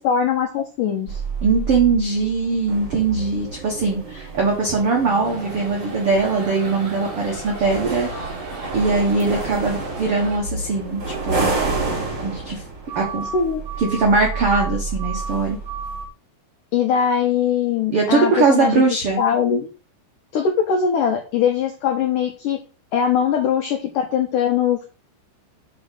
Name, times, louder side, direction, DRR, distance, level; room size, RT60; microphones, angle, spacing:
voice 1, 0.0-1.2 13.3-13.6 16.7-19.7 20.3-22.6 22.9-24.9, left 7 dB, 80° left, 3 dB, 1.9 m, -21 dB
sound 1, 1.1-16.1, right 3 dB, 30° right, 2.9 m, -30 dB
voice 2, 1.4-8.1 8.7-11.5 12.2-12.6 12.9-13.2 13.8-15.6 17.9-19.2, right 4 dB, 80° right, 0 dB, 1.3 m, -21 dB
sound 2, 5.2-10.4, right 3 dB, 50° right, 3.7 m, -35 dB
6.3 x 5.2 x 6.4 m, 0.36 s
omnidirectional pair, 5.0 m